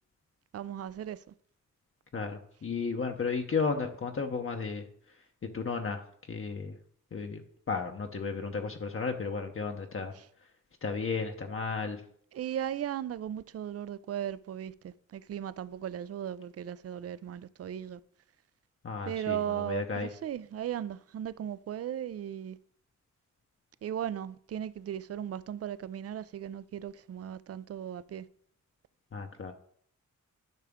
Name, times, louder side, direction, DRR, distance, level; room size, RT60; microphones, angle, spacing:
voice 1, 0.5-1.2 10.1-10.3 12.3-18.0 19.1-22.6 23.8-28.3, right 10 dB, 50° right, 0.4 m, -37 dB
voice 2, 2.1-4.8 5.5-6.0 6.3-6.8 7.1-7.4 7.7-10.1 10.8-12.0 18.8-20.1 29.1-29.5, left 5 dB, 45° left, 0.8 m, -33 dB
10.5 x 5.7 x 3.6 m
cardioid pair, 85°, 31 cm